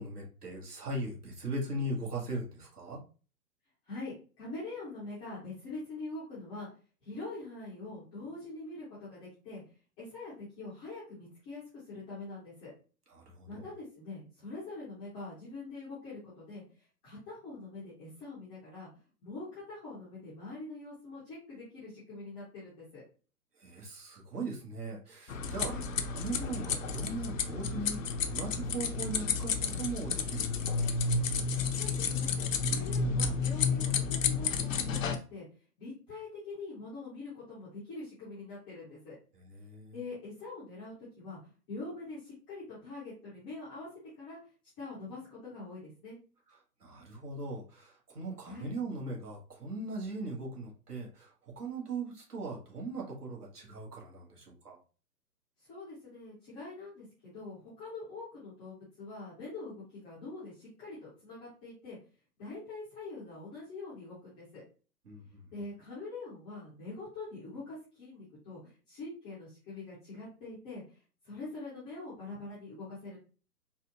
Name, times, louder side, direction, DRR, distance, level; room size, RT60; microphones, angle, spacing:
voice 1, 0.0-3.0 13.1-13.6 23.6-25.7 26.1-28.0 28.3-30.9 39.4-40.0 46.8-54.8 65.0-65.5, right 2 dB, 65° right, -1 dB, 1.6 m, -39 dB
voice 2, 3.9-6.7 7.0-9.6 10.0-12.7 13.5-16.6 17.0-18.9 19.2-23.0 25.6-25.9 31.8-35.4 35.8-39.1 39.9-41.4 41.7-43.9 44.2-44.4 44.8-46.2 48.4-48.7 55.7-62.0 62.4-64.6 65.5-70.8 71.2-73.2, left 3 dB, 5° left, -13 dB, 0.5 m, -44 dB
sound 1, 25.3-35.2, left 5 dB, 55° left, 0.5 m, -31 dB
4.2 x 2.3 x 2.8 m, 0.36 s
figure-of-eight pair, 120°, 49 cm